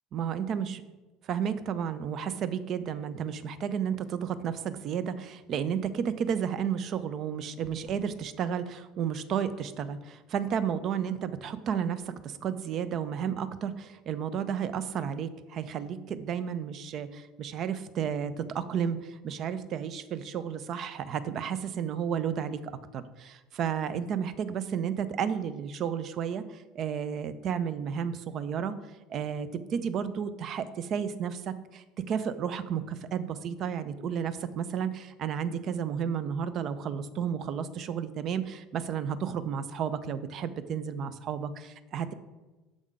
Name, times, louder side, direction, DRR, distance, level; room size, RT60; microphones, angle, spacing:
voice 1, 0.1-0.8 1.3-28.7 29.1-42.1, right 8 dB, 45° right, 12 dB, 0.4 m, -32 dB
sound 1, 7.6-8.1, equal, 75° right, 1.8 m, -55 dB
6.4 x 3.5 x 4.8 m, 1.1 s
figure-of-eight pair, 65°, 0 cm